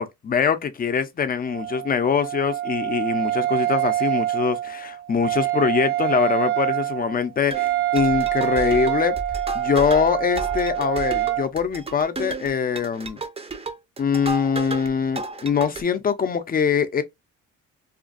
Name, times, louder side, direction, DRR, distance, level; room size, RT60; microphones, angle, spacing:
voice 1, 0.0-9.2 9.5-13.2 14.0-17.0, left 6 dB, 30° left, 0.5 m, -23 dB
Wind instrument woodwind instrument, 1.5-11.5, right 14 dB, 80° right, 0.7 m, -25 dB
sound 1, 7.5-14.9 15.2-15.8, right 2 dB, 20° right, 0.5 m, -33 dB
2.4 x 2.3 x 2.4 m
cardioid pair, 90°, 30 cm